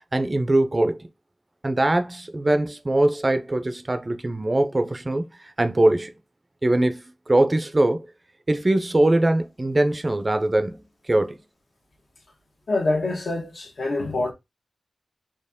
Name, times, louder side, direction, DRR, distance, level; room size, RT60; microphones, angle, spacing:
voice 1, 0.1-1.1 1.6-6.1 6.6-8.1 8.5-11.4, right 1 dB, 25° right, 0.6 m, -22 dB
voice 2, 12.7-14.3, left 2 dB, 65° left, 1.4 m, -25 dB
4.4 x 2.9 x 3.5 m
wide cardioid pair, 110°, 0 cm